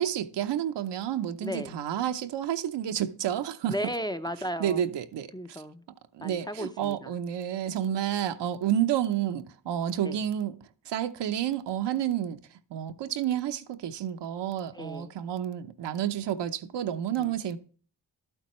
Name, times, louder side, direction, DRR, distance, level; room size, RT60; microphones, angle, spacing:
voice 1, 0.0-3.7 4.6-5.3 6.1-10.6 10.9-12.4 12.7-17.6, right 10 dB, 70° right, 0.8 m, -30 dB
voice 2, 1.4-1.8 3.7-4.8 5.3-5.8 6.2-7.1 10.0-10.2 14.8-15.1 17.2-17.4, equal, 10° left, 0.6 m, -35 dB
11.5 x 8.9 x 3.1 m
cardioid pair, 60°, 43 cm